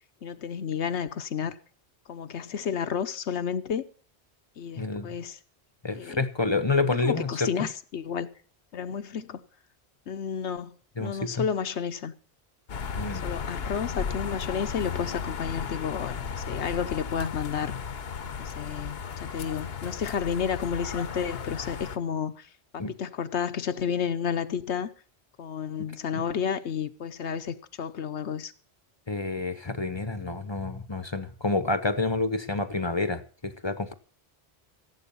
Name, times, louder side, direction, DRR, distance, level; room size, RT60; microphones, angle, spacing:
voice 1, 0.2-1.6 2.1-3.8 4.6-5.4 6.0-6.3 7.0-8.3 8.7-9.4 10.1-12.1 13.2-17.8 18.4-24.9 25.4-28.5, left 7 dB, 85° left, 1.2 m, -31 dB
voice 2, 4.8-5.1 5.8-7.5 11.0-11.4 13.0-13.3 22.8-22.9 26.1-26.2 29.1-33.9, left 3 dB, 25° left, 0.9 m, -28 dB
sound 1, 12.7-22.0, left 6 dB, 65° left, 1.1 m, -35 dB
16.0 x 8.3 x 7.0 m
omnidirectional pair, 1.1 m